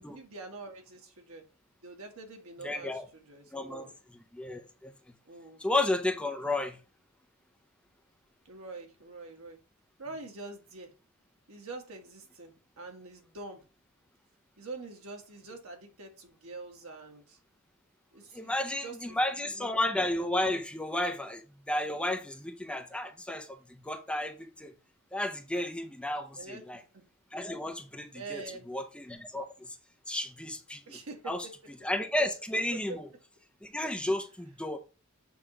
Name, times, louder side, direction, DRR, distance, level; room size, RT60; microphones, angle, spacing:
voice 1, 0.0-1.4 1.8-4.0 5.2-5.6 8.4-9.6 10.0-10.9 11.5-13.6 14.6-17.4 18.1-19.2 19.4-19.7 26.3-26.6 26.9-27.0 28.1-28.7 30.9-31.5 32.9-33.0, right 3 dB, 85° right, 1.5 m, -45 dB
voice 2, 2.6-3.1 3.5-3.9 4.3-4.9 5.6-6.8 18.3-21.4 21.7-24.7 25.1-26.8 27.3-28.4 28.7-29.8 30.1-30.8 31.3-31.4 31.8-33.1 33.6-34.8, left 1 dB, 5° left, 0.6 m, -32 dB
6.9 x 3.0 x 4.9 m
head